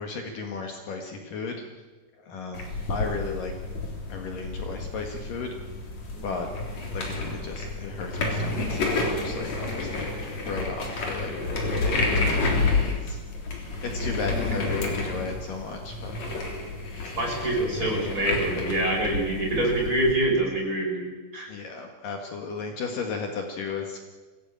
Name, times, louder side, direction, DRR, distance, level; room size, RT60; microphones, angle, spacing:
voice 1, 0.0-1.5 2.3-3.5 4.1-5.5 6.2-6.5 6.9-10.1 10.4-11.3 11.7-13.2 13.8-16.1 21.5-24.0, left 4 dB, 60° left, 3 dB, 3.0 m, -34 dB
sound 1, 2.5-20.1, left 3 dB, 45° left, 4.5 m, -30 dB
voice 2, 17.2-21.1 21.3-21.5, right 1 dB, 20° right, -1 dB, 5.8 m, -25 dB
24.0 x 16.5 x 8.9 m, 1.3 s
omnidirectional pair, 4.7 m